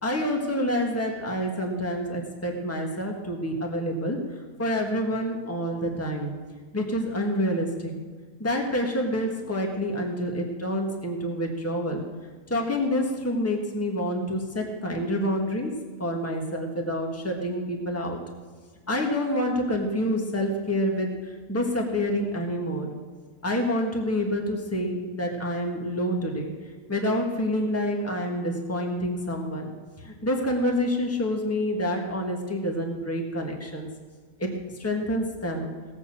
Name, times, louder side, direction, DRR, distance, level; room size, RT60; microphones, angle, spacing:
voice 1, 0.0-4.2 4.6-6.3 6.7-7.9 8.4-12.0 12.5-15.7 16.0-18.2 18.9-22.9 23.4-26.5 26.9-33.9 34.4-34.5 34.8-35.7, equal, 10° left, 1 dB, 1.7 m, -27 dB
18.0 x 7.0 x 7.5 m, 1.5 s
omnidirectional pair, 1.5 m